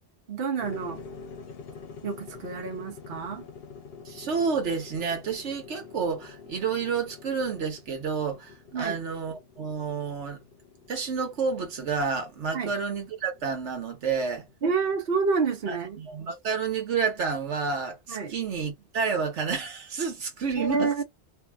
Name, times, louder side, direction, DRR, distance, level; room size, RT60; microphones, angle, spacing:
voice 1, 0.3-1.0 2.0-3.5 8.7-9.0 12.5-12.7 14.6-16.0 18.1-18.3 20.6-21.0, right 5 dB, 60° right, 0.9 m, -28 dB
sound 1, 0.6-15.1, left 5 dB, 60° left, 0.9 m, -47 dB
voice 2, 4.0-10.4 10.9-14.5 15.7-20.9, right 5 dB, 85° right, 1.3 m, -30 dB
2.8 x 2.6 x 2.3 m
omnidirectional pair, 1.2 m